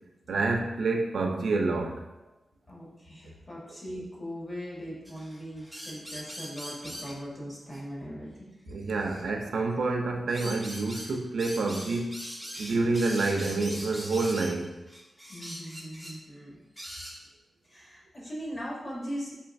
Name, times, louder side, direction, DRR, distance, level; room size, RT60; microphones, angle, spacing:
voice 1, 0.3-2.0 8.7-12.2 12.6-14.8, right 3 dB, 85° right, 3 dB, 0.4 m, -28 dB
voice 2, 2.7-8.5 15.3-16.6 17.6-19.3, equal, 30° left, -5 dB, 1.2 m, -40 dB
sound 1, 5.1-7.2 7.7-7.8 8.7-9.3 10.3-16.2 16.8-17.2, equal, 5° left, 0.6 m, -41 dB
4.5 x 3.0 x 2.5 m, 1.0 s
wide cardioid pair, 140°, 0 cm